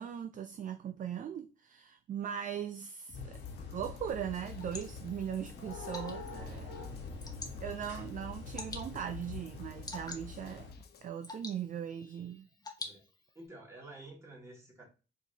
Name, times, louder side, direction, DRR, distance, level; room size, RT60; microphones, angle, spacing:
voice 1, 0.0-3.2 3.7-6.7 7.6-10.7 11.0-12.5, right 9 dB, 40° right, 0.4 m, -39 dB
sound 1, 3.1-10.7, left 4 dB, 70° left, 1.4 m, -45 dB
sound 2, 3.1-11.1, left 6 dB, 55° left, 0.5 m, -55 dB
Water / Drip, 4.1-13.5, left 3 dB, 20° left, 0.9 m, -49 dB
voice 2, 6.8-7.1 12.8-13.0 13.3-14.8, right 2 dB, 15° right, 1.9 m, -51 dB
4.5 x 2.9 x 2.7 m
cardioid pair, 90°, 20 cm